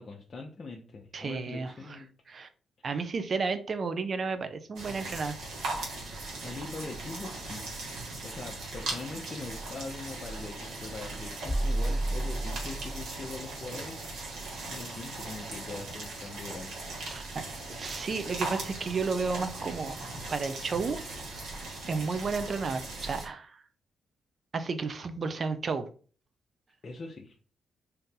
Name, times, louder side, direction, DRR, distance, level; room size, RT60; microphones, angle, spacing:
voice 1, 0.0-2.1 2.8-2.9 6.4-7.7 8.2-14.0 14.7-16.8 26.8-27.3, left 3 dB, 45° left, 1 dB, 0.5 m, -42 dB
voice 2, 1.1-1.7 2.3-2.5 2.8-5.4 17.1-20.0 20.3-21.0 21.9-23.5 24.5-25.9, right 4 dB, 50° right, 9 dB, 0.5 m, -32 dB
sound 1, 4.8-23.3, right 2 dB, 70° right, 1.2 m, -39 dB
sound 2, 11.5-13.3, right 1 dB, 5° right, 0.9 m, -31 dB
2.7 x 2.6 x 3.7 m, 0.40 s
hypercardioid pair, 50°, 0 cm